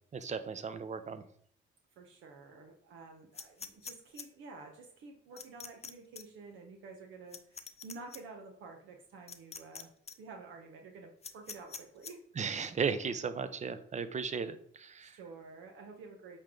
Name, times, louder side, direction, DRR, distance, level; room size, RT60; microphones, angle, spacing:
voice 1, 0.1-1.2 12.4-15.2, right 6 dB, 35° right, 12 dB, 0.7 m, -36 dB
voice 2, 2.0-9.9 10.2-12.2 15.0-16.4, right 4 dB, 85° right, 3 dB, 1.2 m, -50 dB
sound 1, 3.3-4.2 5.4-5.9 6.1-6.2 7.3-8.2 9.3-9.8 10.1-10.2 11.2-12.1, left 5 dB, 30° left, 0.8 m, -44 dB
8.3 x 4.5 x 3.8 m, 0.64 s
cardioid pair, 90°, 20 cm